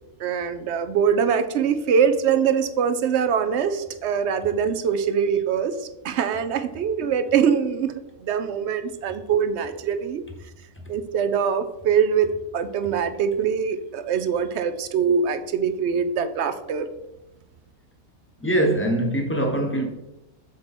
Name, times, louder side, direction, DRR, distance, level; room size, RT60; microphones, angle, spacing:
voice 1, 0.2-10.2 10.9-12.3 12.5-16.9, right 7 dB, 65° right, 0.7 m, -23 dB
voice 2, 18.4-19.9, right 1 dB, 10° left, 0.9 m, -22 dB
7.4 x 4.4 x 4.3 m
omnidirectional pair, 1.6 m